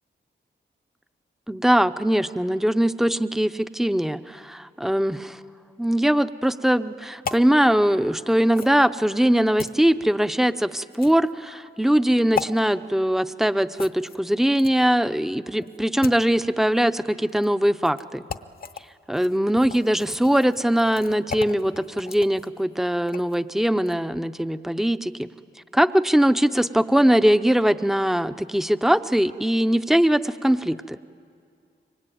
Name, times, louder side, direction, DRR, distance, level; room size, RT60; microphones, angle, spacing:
voice 1, 1.5-5.4 5.8-18.2 19.1-25.3 25.7-31.0, equal, ahead, 11 dB, 0.6 m, -21 dB
sound 1, 7.2-7.5 8.5-8.8 9.6-9.8 10.9-11.3 12.3-12.5 13.7-14.9 15.6-16.3 17.3-17.5 17.8-18.0 18.3-18.8 19.1-23.4 23.8-24.0, left 6 dB, 50° left, 0.8 m, -36 dB
27.0 x 24.0 x 9.2 m, 2.3 s
wide cardioid pair, 140°, 20 cm